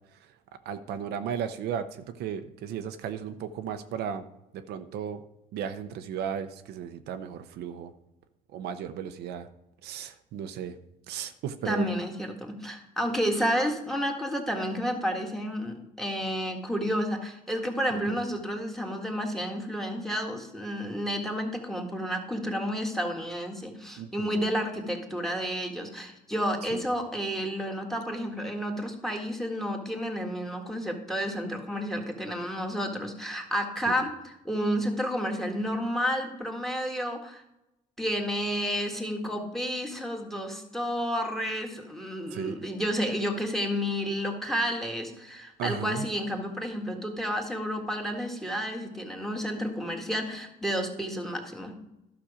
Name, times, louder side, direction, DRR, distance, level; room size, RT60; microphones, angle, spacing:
voice 1, 0.7-4.3 4.5-5.2 5.5-7.9 8.5-9.5 9.8-10.8 11.1-11.9 17.9-18.2 24.0-24.3 26.7-26.9 33.9-34.1 42.3-42.5 45.6-46.1, right 8 dB, 75° right, 9 dB, 0.7 m, -35 dB
voice 2, 11.7-37.4 38.0-51.7, equal, ahead, 3 dB, 1.7 m, -31 dB
12.0 x 6.1 x 5.0 m, 0.92 s
cardioid pair, 110°, 17 cm